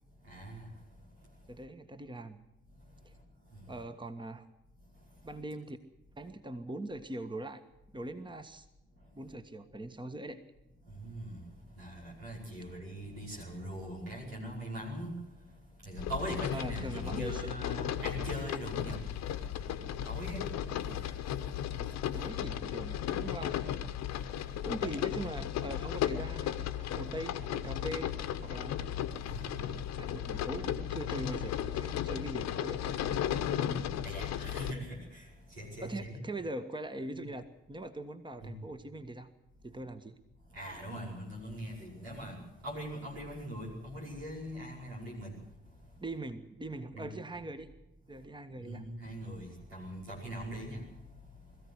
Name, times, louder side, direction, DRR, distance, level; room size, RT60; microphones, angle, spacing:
voice 1, 0.3-0.6 11.0-11.4 11.8-15.1 15.9-19.0 20.1-20.5 29.3-29.6 34.0-35.2 35.6-36.2 38.4-38.6 40.6-42.4 42.6-45.3 46.9-47.1 48.6-50.8, equal, 85° right, -4 dB, 5.4 m, -41 dB
voice 2, 1.5-2.4 3.0-3.1 3.7-4.5 5.2-5.8 6.2-7.6 7.9-8.7 9.1-10.4 16.5-17.5 21.8-23.7 24.6-28.8 29.9-33.0 35.8-39.3 39.6-40.2 46.0-47.7 48.1-48.8, right 1 dB, 15° right, 9 dB, 1.6 m, -41 dB
sound 1, 16.0-34.7, left 10 dB, 65° left, 1.3 m, -35 dB
21.5 x 15.0 x 8.1 m, 0.92 s
figure-of-eight pair, 40°, 29 cm